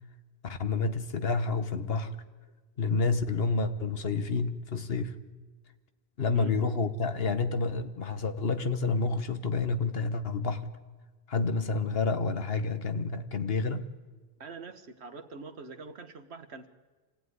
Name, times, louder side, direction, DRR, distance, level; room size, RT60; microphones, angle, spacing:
voice 1, 0.4-2.2 2.8-5.2 6.2-10.7 11.3-13.8, left 4 dB, 70° left, 1.5 m, -29 dB
voice 2, 14.4-16.7, right 3 dB, 90° right, 1.6 m, -44 dB
26.0 x 18.0 x 9.7 m
omnidirectional pair, 1.1 m